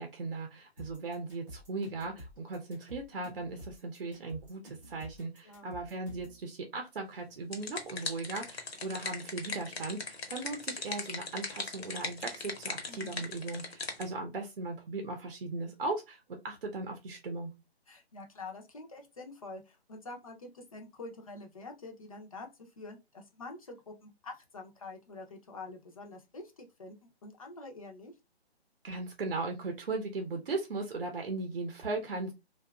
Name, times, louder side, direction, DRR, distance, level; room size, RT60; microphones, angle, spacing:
voice 1, 0.0-17.5 28.8-32.3, right 3 dB, 55° right, 3 dB, 0.6 m, -38 dB
sound 1, 0.8-6.4, equal, 5° right, 0.6 m, -50 dB
voice 2, 5.4-5.8 12.9-13.2 17.9-28.1, left 3 dB, 35° left, 3 dB, 0.5 m, -47 dB
sound 2, 7.2-14.1, left 4 dB, 70° left, 0.8 m, -39 dB
2.7 x 2.3 x 2.2 m, 0.24 s
figure-of-eight pair, 145°, 32 cm